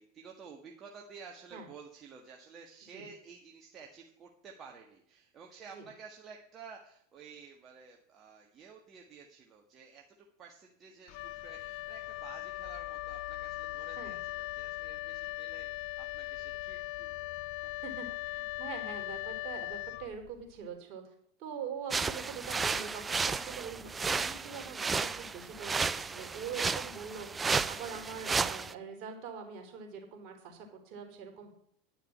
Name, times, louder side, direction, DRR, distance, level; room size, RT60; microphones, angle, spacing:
voice 1, 0.0-17.7 18.6-19.1, right 5 dB, 35° right, 1 dB, 1.7 m, -52 dB
Wind instrument woodwind instrument, 11.1-20.6, left 20 dB, 60° left, 0.6 m, -39 dB
voice 2, 17.8-21.0 21.4-27.3 27.7-31.5, right 6 dB, 50° right, 2 dB, 3.7 m, -43 dB
sound 1, 21.9-28.7, right 4 dB, 20° right, 0.5 m, -33 dB
10.5 x 6.5 x 8.6 m, 0.68 s
hypercardioid pair, 95°, 0 cm